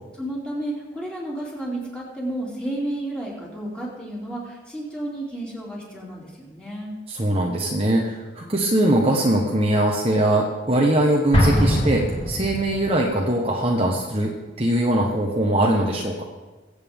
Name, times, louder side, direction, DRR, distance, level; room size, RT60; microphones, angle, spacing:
voice 1, 0.2-7.0, right 1 dB, 5° left, -5 dB, 3.0 m, -32 dB
voice 2, 7.1-16.2, right 1 dB, 30° right, -1 dB, 1.1 m, -21 dB
Explosion, 11.3-13.0, equal, 30° left, 2.3 m, -21 dB
22.0 x 8.1 x 3.7 m, 1.2 s
head